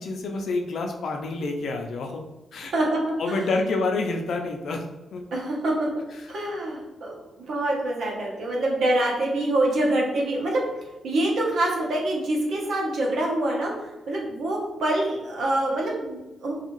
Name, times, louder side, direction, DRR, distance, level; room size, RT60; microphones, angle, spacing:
voice 1, 0.0-2.2 2.5-2.7 3.2-4.9 5.1-5.2 6.2-6.3, left 3 dB, 65° left, 3 dB, 0.4 m, -28 dB
voice 2, 2.6-3.0 3.3-3.4 5.3-5.9 6.3-10.6 11.0-16.5, right 1 dB, 70° right, -2 dB, 0.8 m, -25 dB
2.7 x 2.4 x 2.9 m, 0.99 s
cardioid pair, 110°, 0 cm